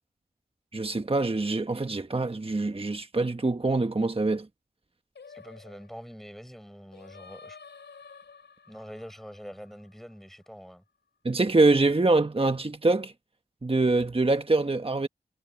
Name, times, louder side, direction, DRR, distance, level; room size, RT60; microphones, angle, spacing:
voice 1, 0.7-4.5 11.2-13.1 13.6-15.1, right 2 dB, 30° right, 1.2 m, -24 dB
Singing, 5.1-10.4, left 5 dB, 90° left, 5.0 m, -51 dB
voice 2, 5.3-7.6 8.7-10.8, equal, ahead, 5.4 m, -45 dB
cardioid pair, 40°, 18 cm